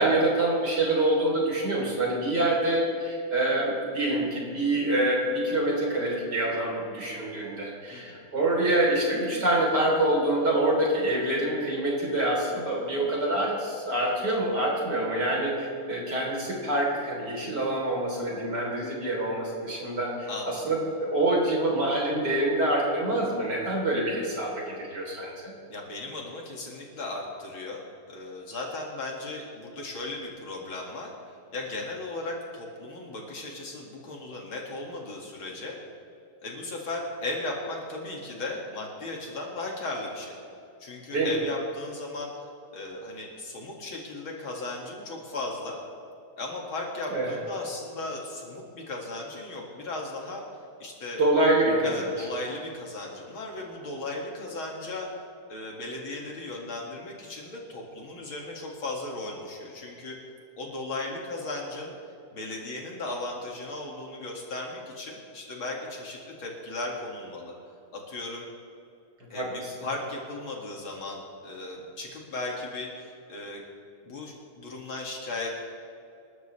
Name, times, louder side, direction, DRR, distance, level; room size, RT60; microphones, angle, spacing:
voice 1, 0.0-25.5 41.1-41.3 47.1-47.3 51.2-52.1 69.3-69.7, right 1 dB, 50° right, -3 dB, 4.4 m, -26 dB
voice 2, 7.9-8.2 20.3-20.7 25.7-27.8 28.1-31.1 31.5-35.8 36.4-40.4 40.8-42.3 42.7-45.8 46.4-50.4 50.8-51.2 51.8-55.1 55.5-60.2 60.5-61.9 62.3-67.5 67.9-68.5 69.3-73.6 74.0-75.5, left 2 dB, 70° left, -1 dB, 3.0 m, -36 dB
26.5 x 12.5 x 3.4 m, 2.6 s
omnidirectional pair, 2.4 m